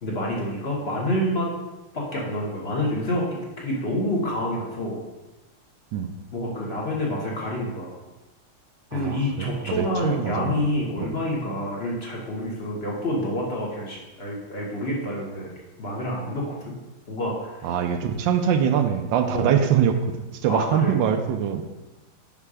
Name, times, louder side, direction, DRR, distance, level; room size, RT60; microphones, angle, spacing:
voice 1, 0.0-1.5 1.9-5.0 6.3-7.9 8.9-15.5 15.8-16.7 17.1-17.7 19.3-19.6 20.5-21.0, left 1 dB, 45° left, -3 dB, 0.8 m, -28 dB
voice 2, 8.9-10.6 11.0-11.1 17.6-20.2 20.4-21.6, right 8 dB, 75° right, 7 dB, 1.1 m, -23 dB
5.5 x 4.9 x 4.8 m, 1.1 s
omnidirectional pair, 2.4 m